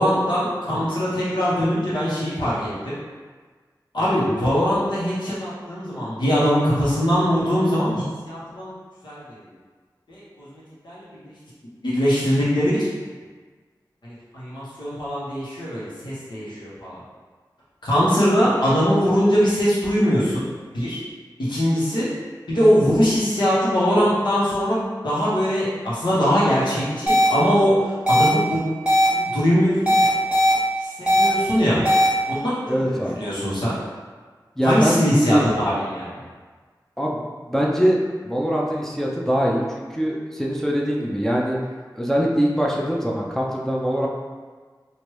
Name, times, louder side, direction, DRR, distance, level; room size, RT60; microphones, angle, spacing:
voice 1, 0.0-2.7 3.9-8.7 9.0-9.4 10.1-11.1 11.8-12.9 14.0-17.0 17.8-20.4 20.7-21.0 21.5-22.1 22.5-28.8 29.1-30.1 30.8-31.8 32.3-33.7 34.6-36.1, equal, 80° left, -9 dB, 1.1 m, -21 dB
sound 1, 27.1-27.3 28.1-28.3 28.9-29.1 29.9-30.5 31.1-31.3 31.9-32.1, equal, 10° right, 1.2 m, -16 dB
voice 2, 32.7-33.2 34.6-35.5 37.0-38.0 38.2-41.6 41.9-44.1, equal, 5° left, -3 dB, 0.5 m, -23 dB
3.1 x 2.5 x 3.1 m, 1.4 s
wide cardioid pair, 70°, 8 cm